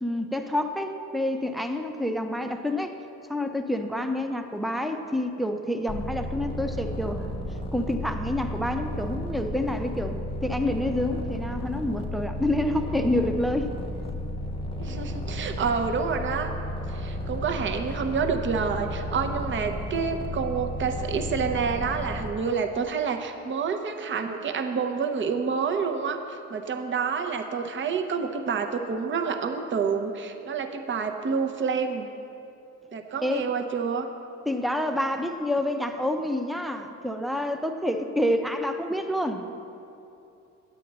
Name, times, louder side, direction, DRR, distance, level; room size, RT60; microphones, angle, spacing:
voice 1, 0.0-2.9 3.3-7.3 7.7-13.7 33.2-33.5 34.5-39.5, left 1 dB, ahead, 6 dB, 0.6 m, -28 dB
sound 1, 5.9-22.3, equal, 20° left, 0.9 m, -33 dB
voice 2, 14.8-16.5 16.9-32.1 32.9-34.1, right 5 dB, 40° right, 6 dB, 0.7 m, -28 dB
9.8 x 8.2 x 4.0 m, 2.8 s
cardioid pair, 90°, 30 cm